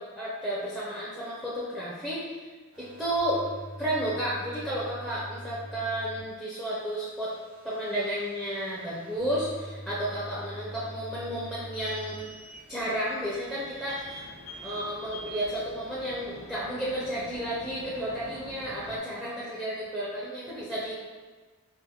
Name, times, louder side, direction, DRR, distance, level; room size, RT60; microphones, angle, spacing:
voice 1, 0.0-2.5 2.8-3.4 3.8-7.3 7.6-12.2 12.7-14.3 14.6-20.9, right 1 dB, ahead, -8 dB, 0.4 m, -32 dB
sound 1, 2.7-6.2 6.5-12.2 12.5-13.0, equal, 80° right, 1.5 m, -45 dB
sound 2, 10.3-17.6, right 1 dB, 65° left, 0.6 m, -47 dB
sound 3, 11.2-19.0, equal, 50° right, 0.7 m, -50 dB
4.0 x 2.0 x 2.8 m, 1.3 s
head